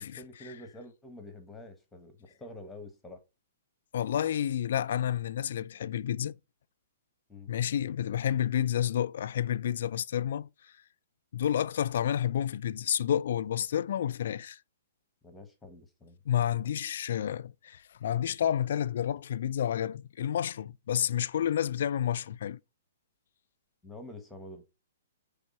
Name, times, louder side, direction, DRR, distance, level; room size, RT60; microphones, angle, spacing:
voice 1, 0.0-3.2 7.3-7.5 15.2-16.2 23.8-24.7, left 2 dB, 5° left, 1.2 m, -47 dB
voice 2, 3.9-6.4 7.5-10.5 11.3-14.6 16.3-22.6, left 10 dB, 65° left, 0.4 m, -30 dB
5.8 x 3.4 x 5.4 m
hypercardioid pair, 145°, 0 cm